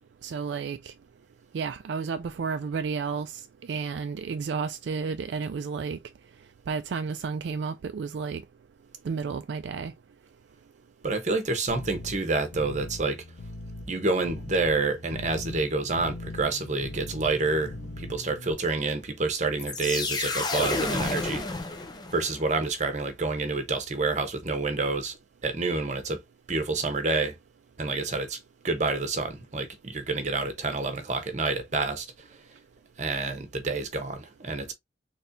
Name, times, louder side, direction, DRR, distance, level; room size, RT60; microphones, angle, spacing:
voice 1, 0.2-0.9 1.5-6.0 6.7-8.4 9.0-9.9, right 5 dB, 70° right, 0.3 m, -32 dB
voice 2, 11.0-13.2 13.9-21.5 22.1-25.2 25.4-26.2 26.5-27.4 27.8-28.4 28.6-32.3 33.0-34.7, right 3 dB, 40° right, 0.9 m, -28 dB
sound 1, 11.7-18.5, left 2 dB, 75° left, 0.8 m, -41 dB
sound 2, 19.6-22.4, left 3 dB, 20° left, 0.6 m, -30 dB
4.2 x 3.2 x 2.6 m
head